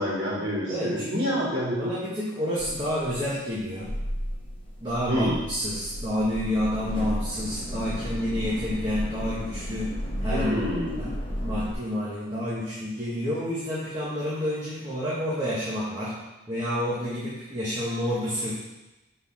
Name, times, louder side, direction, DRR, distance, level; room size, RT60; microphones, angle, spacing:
voice 1, 0.0-1.9 5.1-5.4 10.3-11.1, equal, 60° right, -8 dB, 2.9 m, -27 dB
voice 2, 0.7-1.4 1.6-3.9 4.8-10.5 11.0-11.1 11.4-16.2 16.5-18.5, equal, 25° right, -10 dB, 1.6 m, -29 dB
sound 1, 2.6-11.7, equal, 25° left, 1.4 m, -33 dB
6.4 x 4.5 x 6.2 m, 1.0 s
head